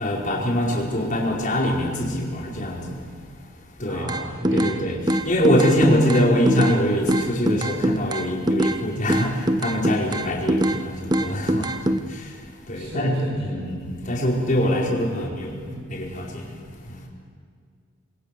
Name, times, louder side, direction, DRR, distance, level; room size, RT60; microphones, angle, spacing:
voice 1, 0.0-3.0 3.8-4.1 4.5-17.0, equal, 40° left, -2 dB, 4.9 m, -24 dB
voice 2, 3.9-4.7 12.7-13.6 14.7-15.3 15.6-15.8, right 1 dB, 65° right, -3 dB, 6.3 m, -35 dB
sound 1, 4.1-4.8 5.1-6.8 7.1-8.8 9.1-10.8 11.1-12.0, right 1 dB, 20° right, 0.9 m, -22 dB
28.0 x 22.5 x 6.9 m, 2.1 s
head